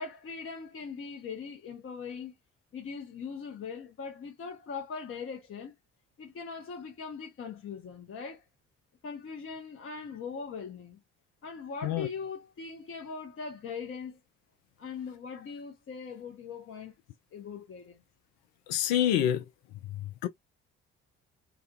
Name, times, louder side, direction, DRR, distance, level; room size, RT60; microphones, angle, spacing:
voice 1, 0.0-2.3 2.7-5.7 6.2-8.4 9.0-11.0 11.4-14.2 14.8-16.9 17.3-18.0, left 5 dB, 35° left, 0.8 m, -40 dB
voice 2, 18.7-19.4 19.9-20.3, left 11 dB, 60° left, 0.5 m, -27 dB
2.4 x 2.1 x 2.6 m
figure-of-eight pair, 45°, 37 cm